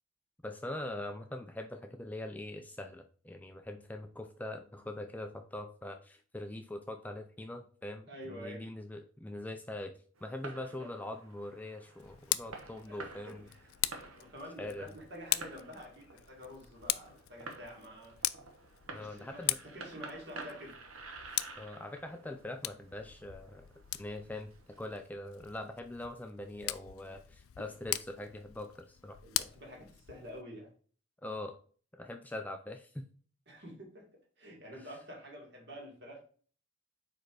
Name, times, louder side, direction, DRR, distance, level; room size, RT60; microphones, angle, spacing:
voice 1, 0.4-9.9 10.2-13.5 14.6-14.9 18.9-19.6 21.6-23.7 24.0-24.5 24.8-29.2 31.2-31.6 31.9-33.1, left 1 dB, 10° left, 6 dB, 0.3 m, -42 dB
voice 2, 8.1-8.7 10.7-10.9 12.8-13.8 14.1-18.2 18.9-20.8 29.2-30.7 33.5-34.1 34.4-36.2, equal, 55° right, -1 dB, 2.2 m, -48 dB
Fireworks, 10.2-25.0, right 3 dB, 80° right, 1.1 m, -51 dB
Tick, 12.0-30.4, left 16 dB, 85° left, 0.4 m, -41 dB
4.8 x 4.4 x 4.7 m, 0.43 s
head